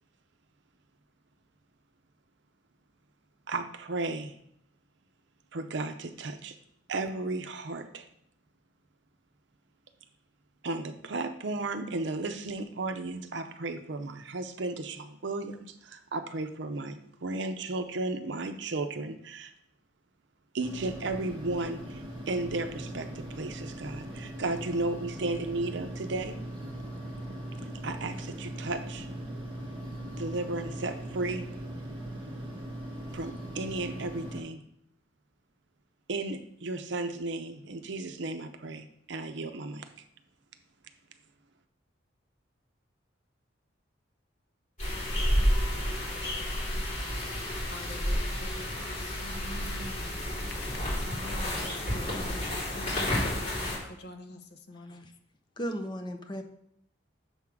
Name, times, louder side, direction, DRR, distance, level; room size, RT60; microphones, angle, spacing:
voice 1, 3.5-4.3 5.5-6.6 6.9-8.1 10.6-19.5 20.5-26.4 27.8-29.1 30.2-31.5 33.1-34.6 36.1-39.9, right 2 dB, 65° right, 8 dB, 0.6 m, -34 dB
sound 1, 20.6-34.4, right 1 dB, 25° right, 1.5 m, -40 dB
sound 2, 44.8-53.8, equal, 40° left, 2.9 m, -30 dB
voice 2, 47.6-53.0 53.6-55.1, left 1 dB, 60° left, 7 dB, 0.7 m, -46 dB
voice 3, 55.6-56.4, equal, 25° left, 5 dB, 0.6 m, -35 dB
7.0 x 3.7 x 5.9 m, 0.70 s
head